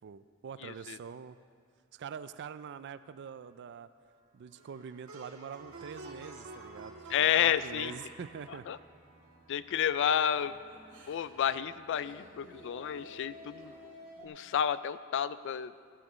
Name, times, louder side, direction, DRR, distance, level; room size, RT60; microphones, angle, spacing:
voice 1, 0.0-1.4 1.9-3.9 4.3-8.7, right 7 dB, 55° right, 14 dB, 0.4 m, -44 dB
voice 2, 0.6-1.0 7.1-8.0 8.7-8.8 9.5-10.6 11.1-13.7 14.2-15.7, left 9 dB, 60° left, 16 dB, 0.3 m, -30 dB
Plucked string instrument, 4.5-9.8, right 3 dB, 70° right, 1.6 m, -51 dB
sound 1, 5.6-14.3, equal, 40° right, 2.2 m, -54 dB
17.0 x 11.0 x 3.1 m, 2.1 s
head